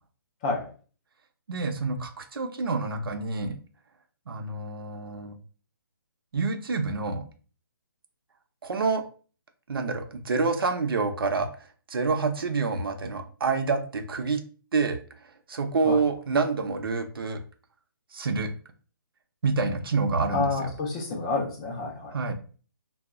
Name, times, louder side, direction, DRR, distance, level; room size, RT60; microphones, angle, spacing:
voice 1, 1.5-3.6 4.3-5.4 6.3-7.2 8.6-9.0 9.7-14.4 14.7-15.0 15.5-17.4 18.1-18.5 19.4-20.7 22.1-22.3, right 4 dB, 75° right, 6 dB, 0.6 m, -27 dB
voice 2, 20.3-22.2, left 3 dB, 15° left, 0 dB, 0.4 m, -29 dB
2.3 x 2.0 x 3.5 m, 0.39 s
hypercardioid pair, 160°, 12 cm